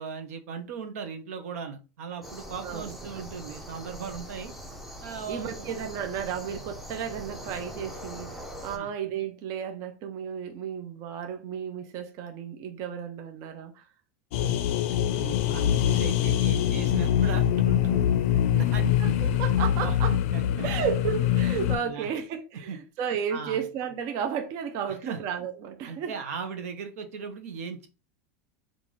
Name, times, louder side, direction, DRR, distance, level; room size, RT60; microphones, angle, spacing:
voice 1, 0.0-4.5 5.0-5.8 8.7-8.9 14.5-14.6 15.0-18.1 18.5-19.1 19.8-19.9 20.3-20.7 21.8-22.1 22.7-22.8 23.3-23.6 24.9-25.2 25.9-27.9, right 6 dB, 85° right, 0.7 m, -37 dB
sound 1, 2.2-8.8, equal, ahead, 0.5 m, -42 dB
voice 2, 2.6-3.2 5.3-13.8 19.0-20.1 20.6-26.1, right 8 dB, 45° right, 0.5 m, -33 dB
sound 2, 14.3-21.8, left 10 dB, 65° left, 0.4 m, -24 dB
3.8 x 2.5 x 3.0 m
supercardioid pair, 130°, 8 cm